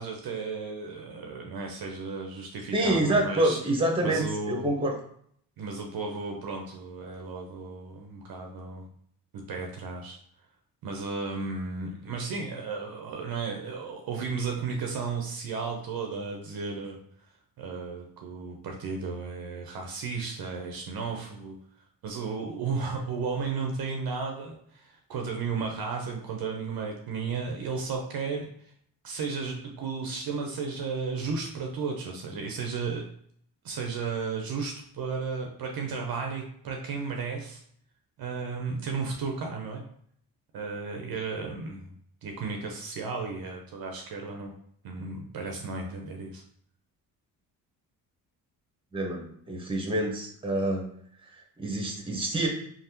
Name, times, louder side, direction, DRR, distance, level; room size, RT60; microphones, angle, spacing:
voice 1, 0.0-3.6 4.0-4.7 5.6-8.9 9.3-10.2 10.8-17.0 17.6-21.6 22.0-28.7 29.0-33.1 33.6-37.6 38.2-39.9 40.5-41.9 42.2-44.5 44.8-46.4, right 4 dB, 60° right, 2 dB, 0.6 m, -34 dB
voice 2, 2.7-4.9 48.9-50.9 51.6-52.5, right 1 dB, 15° right, 1 dB, 0.9 m, -27 dB
3.3 x 2.1 x 2.8 m, 0.65 s
supercardioid pair, 65°, 42 cm